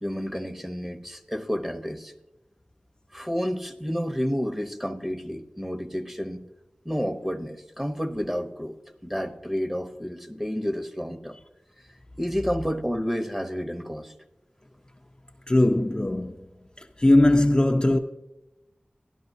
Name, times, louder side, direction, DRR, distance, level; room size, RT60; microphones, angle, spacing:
voice 1, 0.0-2.1 3.1-6.5 6.8-8.8 9.0-11.4 12.2-14.1, equal, 10° right, 0.9 m, -30 dB
voice 2, 15.5-16.4 16.8-18.0, left 1 dB, 25° left, 0.5 m, -20 dB
12.0 x 11.5 x 2.7 m
wide cardioid pair, 50°, 3 cm